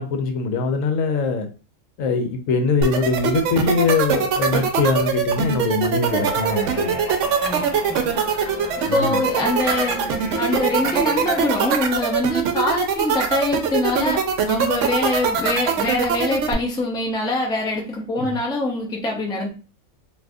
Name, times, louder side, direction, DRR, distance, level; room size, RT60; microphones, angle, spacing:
voice 1, 0.0-1.5 2.0-7.0 8.9-9.2 18.2-18.4, left 4 dB, 80° left, 1.0 m, -22 dB
sound 1, 2.8-16.5, right 7 dB, 70° right, 0.9 m, -21 dB
sound 2, 6.0-11.7, equal, 50° left, 1.0 m, -34 dB
voice 2, 7.4-8.0 8.8-10.0 10.4-19.5, left 2 dB, 5° left, 0.4 m, -24 dB
2.6 x 2.5 x 3.5 m
omnidirectional pair, 1.4 m